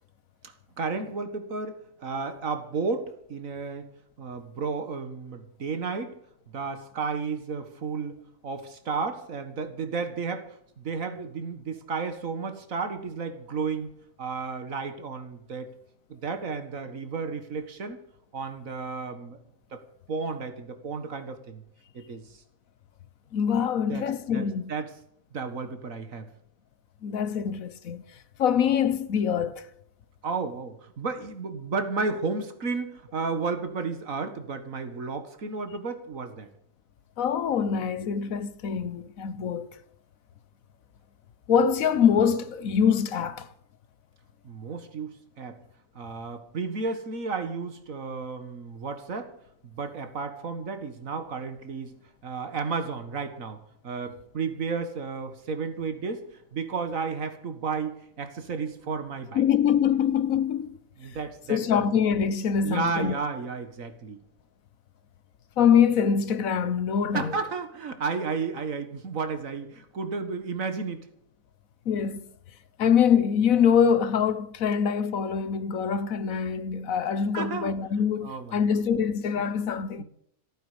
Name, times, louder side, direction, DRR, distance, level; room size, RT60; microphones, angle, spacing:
voice 1, 0.8-3.9 4.2-6.1 6.5-13.9 14.2-15.7 16.1-18.0 18.3-19.4 19.7-19.8 20.1-21.6 21.9-22.2 23.9-24.0 24.3-24.9 25.3-26.3 30.2-36.5 44.4-45.6 46.0-49.3 49.6-51.9 52.2-56.2 56.5-59.4 61.0-61.8 62.6-64.2 67.1-71.1 77.3-77.7 78.2-78.6 80.0-80.1, right 4 dB, 75° right, 2.1 m, -33 dB
voice 2, 23.3-24.7 27.0-28.0 28.4-29.7 37.2-39.7 41.5-43.5 59.3-60.8 61.5-63.1 65.6-67.4 71.9-72.2 72.8-80.0, left 7 dB, 80° left, 1.4 m, -24 dB
27.0 x 9.1 x 5.1 m
omnidirectional pair, 1.4 m